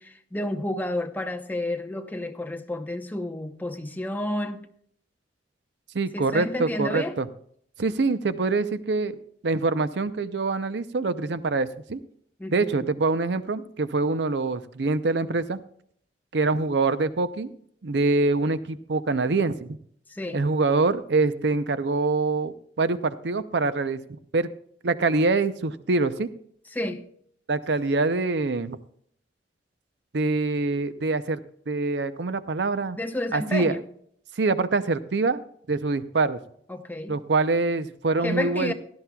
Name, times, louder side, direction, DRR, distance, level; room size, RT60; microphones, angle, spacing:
voice 1, 0.0-4.7 6.1-7.2 12.4-12.9 20.1-20.4 26.7-27.0 32.9-33.8 36.7-37.2 38.2-38.7, left 1 dB, 10° left, 0.8 m, -30 dB
voice 2, 5.9-7.3 7.8-9.2 9.4-12.0 12.5-15.6 16.3-17.5 17.8-19.8 20.3-24.0 24.3-24.5 24.8-26.3 27.5-28.8 30.1-31.4 31.7-33.0 33.3-33.8 34.4-35.4 35.7-36.4 37.1-38.7, right 3 dB, 70° right, 0.6 m, -25 dB
17.0 x 12.5 x 2.3 m
head